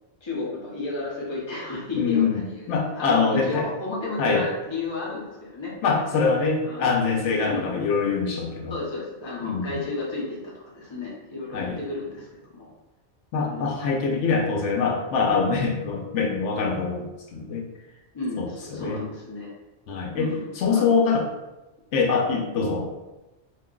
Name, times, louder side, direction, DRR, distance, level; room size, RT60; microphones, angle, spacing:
voice 1, 0.2-2.7 2.9-5.7 6.6-7.0 7.4-7.7 8.7-12.7 13.5-13.7 18.1-19.5 20.1-20.8, left 3 dB, 30° left, -5 dB, 0.7 m, -32 dB
voice 2, 2.0-3.6 4.2-4.4 5.8-8.8 9.4-9.8 11.5-11.8 13.3-17.7 18.4-19.0 19.9-21.3 21.9-22.9, left 5 dB, 85° left, 1 dB, 0.9 m, -24 dB
2.4 x 2.2 x 3.7 m, 1.0 s
omnidirectional pair, 1.2 m